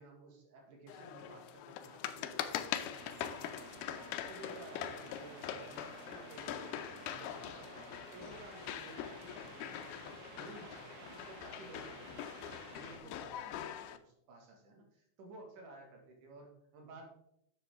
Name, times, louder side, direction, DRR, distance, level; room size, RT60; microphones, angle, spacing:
voice 1, 0.0-4.0 4.3-6.6 7.0-17.1, right 2 dB, 90° right, 1 dB, 3.6 m, -54 dB
sound 1, 0.9-14.0, left 10 dB, 90° left, 2.1 m, -43 dB
sound 2, 2.9-13.0, right 4 dB, 70° right, 1.1 m, -54 dB
sound 3, 4.0-5.0, left 6 dB, 25° right, 3.7 m, -64 dB
10.0 x 7.4 x 3.6 m, 0.73 s
omnidirectional pair, 3.6 m